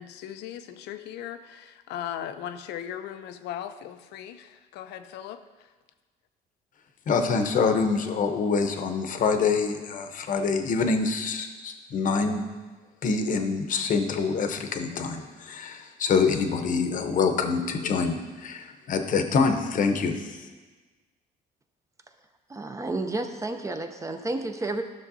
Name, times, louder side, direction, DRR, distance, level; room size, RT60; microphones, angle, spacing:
voice 1, 0.0-5.7, left 10 dB, 85° left, 10 dB, 0.6 m, -38 dB
voice 2, 7.1-12.4 13.0-20.5, left 5 dB, 50° left, 6 dB, 0.9 m, -26 dB
voice 3, 22.5-24.8, right 2 dB, 20° right, 6 dB, 0.6 m, -31 dB
12.5 x 6.3 x 2.7 m, 1.3 s
cardioid pair, 110°, 17 cm